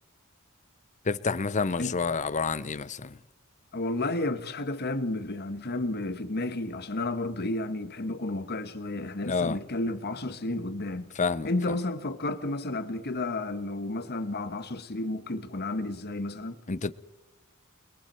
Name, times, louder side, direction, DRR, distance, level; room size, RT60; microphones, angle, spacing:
voice 1, 1.0-3.2 9.2-9.6 11.2-11.7 16.7-16.9, left 4 dB, 35° left, 0.7 m, -29 dB
voice 2, 3.7-11.1 11.4-16.6, left 2 dB, 50° left, 1.3 m, -32 dB
29.5 x 22.0 x 4.5 m
head